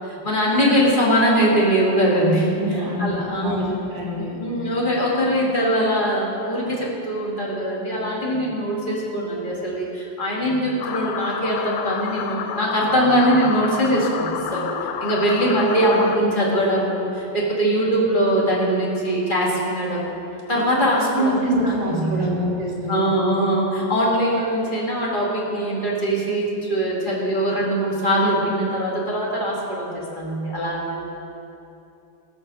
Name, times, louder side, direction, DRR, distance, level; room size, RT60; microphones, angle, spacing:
voice 1, 0.0-2.5 2.8-3.7 4.1-14.7 15.0-20.2 20.5-21.4 21.6-22.3 22.9-31.0, equal, 20° left, -5 dB, 1.3 m, -22 dB
voice 2, 2.6-4.4 15.8-15.9 21.1-23.1, equal, 50° right, -5 dB, 4.3 m, -25 dB
sound 1, 10.8-16.2, left 8 dB, 80° left, 2.4 m, -30 dB
18.0 x 6.6 x 6.3 m, 2.8 s
omnidirectional pair, 4.6 m